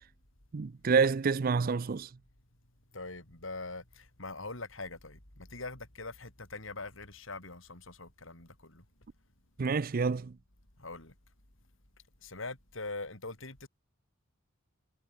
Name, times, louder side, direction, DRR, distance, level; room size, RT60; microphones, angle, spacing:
voice 1, 0.5-2.1 9.6-10.3, right 5 dB, 45° right, 0.4 m, -28 dB
voice 2, 2.9-8.8 10.8-11.1 12.2-13.7, left 3 dB, 70° left, 5.7 m, -43 dB
head